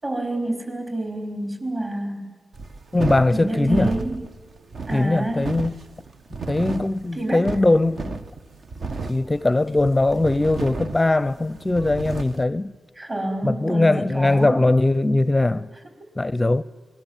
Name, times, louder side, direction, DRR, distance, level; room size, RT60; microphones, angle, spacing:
voice 1, 0.0-2.4 3.3-4.2 4.9-5.5 7.1-7.5 12.9-14.7, right 1 dB, 30° right, 4.8 m, -28 dB
sound 1, 2.5-12.4, right 4 dB, 55° right, 1.4 m, -33 dB
voice 2, 2.9-3.9 4.9-5.7 6.5-8.2 9.1-12.7 13.4-15.7 16.2-16.6, left 2 dB, 15° left, 0.7 m, -20 dB
26.5 x 20.5 x 7.3 m
wide cardioid pair, 95°, 0 cm